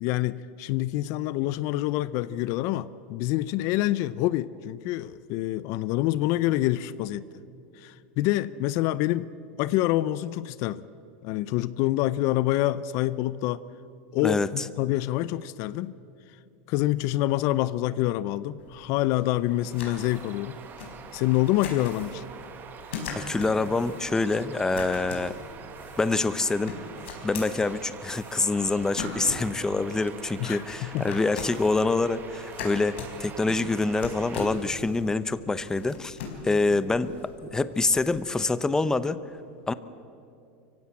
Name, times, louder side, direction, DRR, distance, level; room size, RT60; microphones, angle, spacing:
voice 1, 0.0-7.3 7.8-9.3 9.6-10.8 11.2-13.6 14.1-16.0 16.7-20.6 21.1-22.2 30.4-31.2, left 15 dB, 55° left, 18 dB, 0.6 m, -26 dB
voice 2, 14.2-14.6 23.2-25.4 26.0-26.7 27.2-36.2 36.4-39.2 39.7-39.8, left 3 dB, 10° left, 14 dB, 0.7 m, -26 dB
sound 1, 18.6-38.2, left 4 dB, 80° left, 4.8 m, -41 dB
Bird vocalization bird call bird song, 19.4-34.7, right 7 dB, 30° right, 1.7 m, -45 dB
24.5 x 16.0 x 8.7 m, 2.5 s
supercardioid pair, 130°, 6 cm